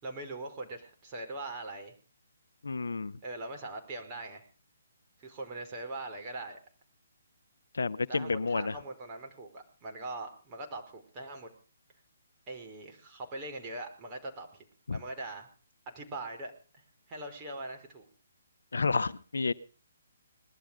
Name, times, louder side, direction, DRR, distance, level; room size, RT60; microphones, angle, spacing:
voice 1, 0.0-1.9 3.2-4.5 5.2-6.6 8.1-11.5 12.5-15.5 15.9-16.5 17.1-18.1, right 2 dB, 25° right, 1 dB, 5.2 m, -41 dB
voice 2, 2.6-3.2 7.7-8.8 14.9-15.0 18.7-19.5, left 4 dB, 70° left, 15 dB, 0.9 m, -30 dB
20.5 x 12.5 x 5.3 m, 0.39 s
figure-of-eight pair, 135°, 0 cm